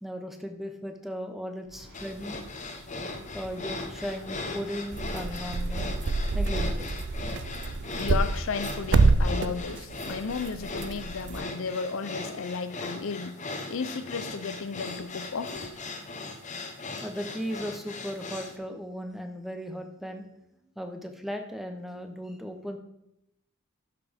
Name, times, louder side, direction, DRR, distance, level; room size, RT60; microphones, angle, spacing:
voice 1, 0.0-2.4 2.9-3.1 3.3-6.0 6.3-6.9 17.0-20.3 20.8-22.8, equal, ahead, 5 dB, 0.7 m, -37 dB
Bird, 1.6-7.1, equal, 85° right, 3.7 m, -50 dB
sound 1, 1.9-18.6, left 2 dB, 35° left, 0.9 m, -38 dB
sound 2, 4.9-11.4, right 3 dB, 55° right, 0.4 m, -27 dB
voice 2, 7.3-13.4 13.7-15.7, left 5 dB, 65° left, 12 dB, 0.5 m, -34 dB
12.0 x 5.8 x 3.5 m, 0.85 s
head